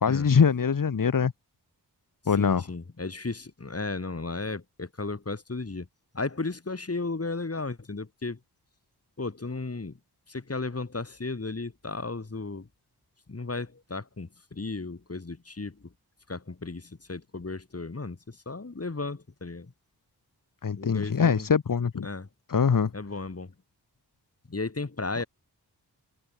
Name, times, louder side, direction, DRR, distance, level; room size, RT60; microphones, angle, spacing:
voice 1, 0.0-1.3 2.3-2.6 20.6-22.1 22.5-22.9, left 6 dB, 55° left, 1.7 m, -23 dB
voice 2, 2.4-5.9 6.1-8.4 9.2-10.0 10.3-12.7 13.3-15.9 16.3-19.7 20.7-21.5 22.0-22.3 22.9-23.5 24.5-25.2, left 3 dB, 35° left, 5.8 m, -35 dB
cardioid pair, 60°, 39 cm